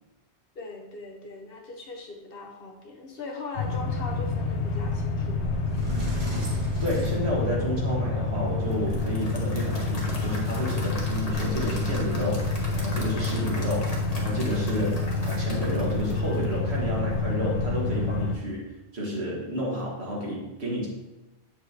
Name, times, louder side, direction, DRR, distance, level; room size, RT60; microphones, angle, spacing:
voice 1, 0.5-5.6, left 3 dB, 60° left, 1 dB, 1.2 m, -40 dB
sound 1, 3.6-18.4, left 3 dB, 80° left, 1.0 m, -28 dB
Sliding door, 5.2-5.3 5.7-7.9, right 2 dB, 55° right, 1.7 m, -36 dB
voice 2, 6.8-20.9, equal, 70° right, -3 dB, 2.0 m, -31 dB
Applause / Crowd, 8.7-16.9, left 1 dB, 35° left, 1.2 m, -40 dB
8.0 x 6.7 x 2.9 m, 1.1 s
omnidirectional pair, 1.1 m